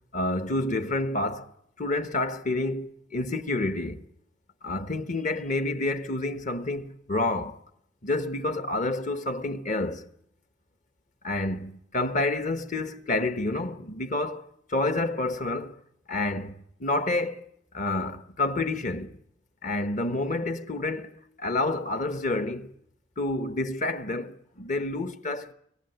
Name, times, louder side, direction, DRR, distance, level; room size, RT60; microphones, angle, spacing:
voice 1, 0.1-1.5 1.8-4.0 4.6-7.6 8.0-10.1 11.2-15.7 16.1-16.5 16.8-17.4 17.7-19.1 19.6-22.7 23.2-25.5, left 2 dB, 45° left, 1.1 m, -29 dB
23.0 x 18.5 x 7.9 m
head